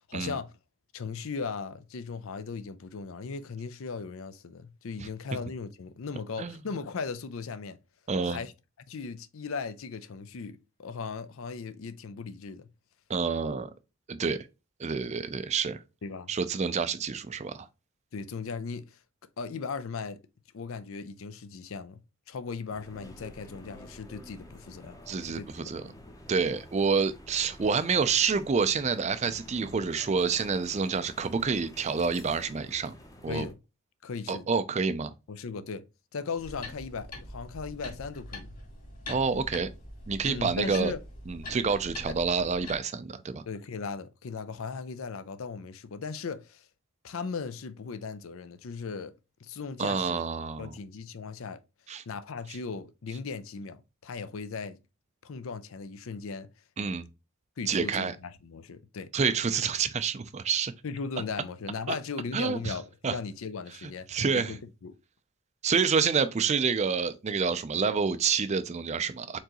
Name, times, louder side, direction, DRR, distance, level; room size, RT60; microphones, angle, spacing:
voice 1, 0.1-0.5 0.9-7.8 8.2-8.5 8.9-12.7 16.0-16.3 18.1-19.0 19.4-20.2 20.5-22.0 22.3-25.5 33.3-33.6 34.0-34.5 35.3-35.9 36.1-38.5 40.2-41.0 42.1-42.2 43.5-46.7 47.0-49.1 49.4-50.2 50.6-51.6 52.1-54.8 55.2-56.5 57.6-59.1 60.8-64.1 64.3-65.0, left 5 dB, 65° left, 0.5 m, -37 dB
voice 2, 8.1-8.4 13.1-13.7 14.1-14.5 14.8-15.8 16.3-17.7 25.1-25.9 26.3-32.9 33.2-33.5 34.3-35.1 39.1-39.7 40.1-40.9 41.3-43.4 49.8-50.7 51.9-52.0 56.8-57.1 57.7-58.1 59.1-60.7 61.9-62.0 62.3-62.7 63.0-63.1 64.1-64.5 65.6-69.4, right 5 dB, 30° right, 0.4 m, -28 dB
sound 1, 22.7-33.5, equal, 15° left, 0.7 m, -50 dB
sound 2, 36.4-42.8, left 2 dB, 35° left, 1.9 m, -43 dB
4.5 x 3.8 x 2.9 m
head